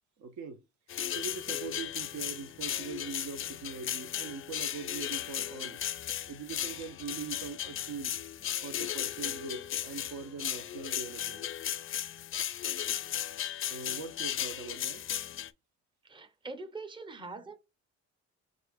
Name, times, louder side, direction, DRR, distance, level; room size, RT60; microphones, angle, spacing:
voice 1, 0.2-0.6 1.1-5.8 6.3-8.2 8.6-11.5 13.7-15.1, right 5 dB, 70° right, 0.7 m, -42 dB
sound 1, 0.9-15.5, left 10 dB, 45° left, 0.4 m, -36 dB
voice 2, 16.0-17.6, right 3 dB, 15° right, 0.7 m, -43 dB
5.0 x 2.5 x 3.4 m
cardioid pair, 90°, 30 cm